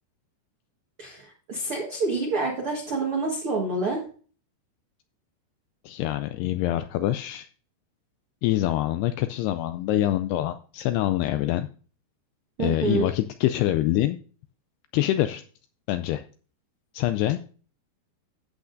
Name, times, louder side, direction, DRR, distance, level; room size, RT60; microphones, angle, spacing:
voice 1, 1.0-4.0 12.6-13.1, right 3 dB, 80° right, 0 dB, 1.2 m, -27 dB
voice 2, 5.9-7.5 8.4-11.7 12.6-14.2 14.9-15.4 15.9-16.2 16.9-17.4, left 14 dB, 85° left, 9 dB, 2.3 m, -25 dB
13.5 x 8.3 x 2.6 m, 0.40 s
omnidirectional pair, 5.1 m